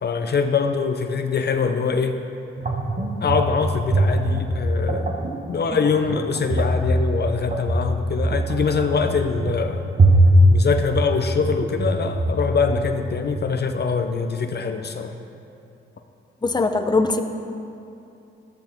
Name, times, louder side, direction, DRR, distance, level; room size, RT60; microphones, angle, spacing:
voice 1, 0.0-2.2 3.2-5.1 5.5-9.9 10.4-15.1, left 5 dB, 55° left, 6 dB, 0.7 m, -23 dB
sound 1, 2.6-13.5, right 1 dB, 40° right, 1.3 m, -21 dB
voice 2, 16.4-17.2, left 3 dB, 20° left, 5 dB, 0.8 m, -20 dB
14.0 x 13.5 x 3.6 m, 2.7 s
cardioid pair, 100°, 21 cm